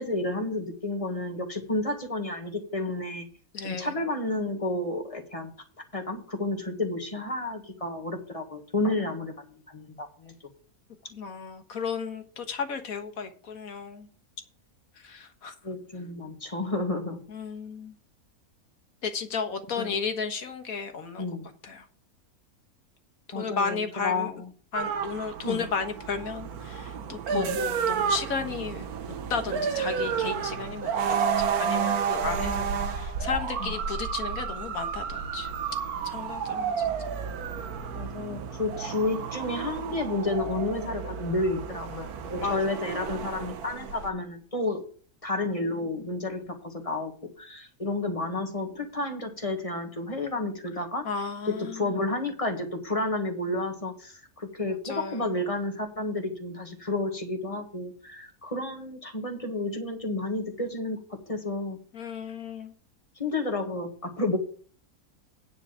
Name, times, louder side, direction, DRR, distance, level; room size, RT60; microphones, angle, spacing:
voice 1, 0.0-3.3 3.6-5.5 5.9-10.3 15.6-17.2 19.8-20.0 21.2-21.5 23.3-24.5 25.4-25.7 27.3-27.6 33.6-33.8 37.9-44.8 45.2-51.0 51.4-61.8 63.2-64.4, left 2 dB, 25° left, 4 dB, 1.7 m, -31 dB
voice 2, 3.5-4.0 11.1-14.1 15.0-15.5 17.3-17.9 19.0-21.3 21.6-21.8 23.3-24.3 24.7-28.9 29.3-30.9 31.4-35.5 36.0-36.9 42.4-42.6 51.0-51.8 54.8-55.3 61.9-62.7, left 5 dB, 70° left, 7 dB, 1.8 m, -33 dB
sound 1, 24.7-44.1, right 7 dB, 85° right, 1.4 m, -31 dB
9.6 x 4.8 x 7.7 m, 0.43 s
omnidirectional pair, 1.6 m